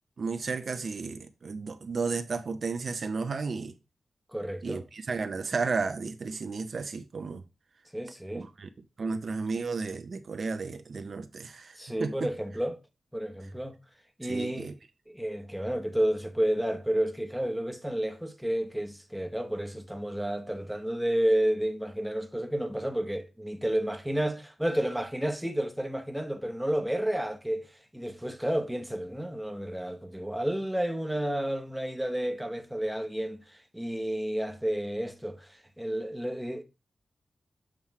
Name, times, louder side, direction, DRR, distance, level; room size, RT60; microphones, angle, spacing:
voice 1, 0.2-3.7 4.6-7.4 8.3-8.7 9.0-12.3 14.2-14.7, right 4 dB, 55° right, 0.5 m, -33 dB
voice 2, 4.3-4.8 7.9-8.5 11.8-12.8 13.1-13.8 14.2-14.7 15.1-36.6, right 1 dB, 5° right, 0.8 m, -31 dB
7.4 x 3.2 x 4.5 m
wide cardioid pair, 95°, 0 cm